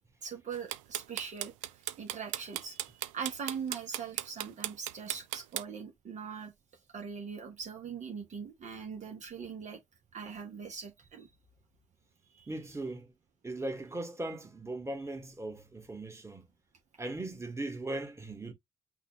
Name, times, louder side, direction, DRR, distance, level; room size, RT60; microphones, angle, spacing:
voice 1, 0.2-6.5 6.9-9.8 10.1-11.3 12.3-12.5, right 6 dB, 50° right, 1.4 m, -41 dB
Ticking timer, 0.5-5.6, right 15 dB, 80° right, 0.4 m, -36 dB
voice 2, 12.5-13.1 13.4-16.4 17.0-18.5, right 2 dB, 15° right, 1.8 m, -38 dB
5.8 x 2.6 x 3.1 m
hypercardioid pair, 50°, 16 cm